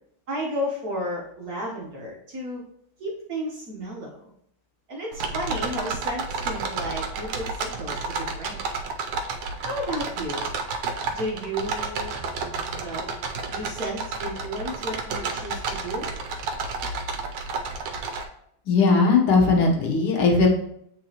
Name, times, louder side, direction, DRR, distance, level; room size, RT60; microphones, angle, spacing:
voice 1, 0.3-2.6 3.0-4.3 4.9-8.6 9.6-10.5 11.0-12.2 12.7-13.1 13.4-16.1, equal, 55° right, -3 dB, 1.2 m, -33 dB
sound 1, 5.1-18.2, right 4 dB, 80° right, 1.6 m, -31 dB
voice 2, 18.7-20.5, left 4 dB, 75° left, 1 dB, 1.8 m, -18 dB
8.6 x 3.9 x 2.8 m, 0.71 s
omnidirectional pair, 2.4 m